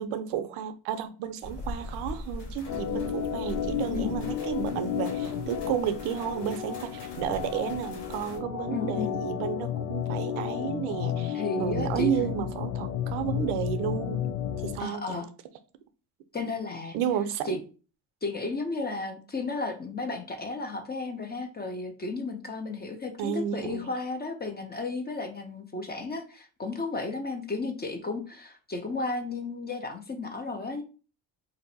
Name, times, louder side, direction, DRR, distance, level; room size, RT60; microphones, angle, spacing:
voice 1, 0.0-14.3 14.6-15.2 16.9-17.6 23.2-23.9, right 9 dB, 80° right, 0.6 m, -32 dB
sound 1, 1.4-8.4, left 1 dB, 65° left, 1.4 m, -41 dB
Organ, 2.6-14.8, left 9 dB, 85° left, 0.6 m, -32 dB
voice 2, 8.7-9.2 11.3-12.1 14.8-15.3 16.3-17.0 17.5-17.6 18.2-30.8, left 3 dB, 20° left, 0.5 m, -33 dB
2.6 x 2.1 x 3.9 m
supercardioid pair, 85°, 48 cm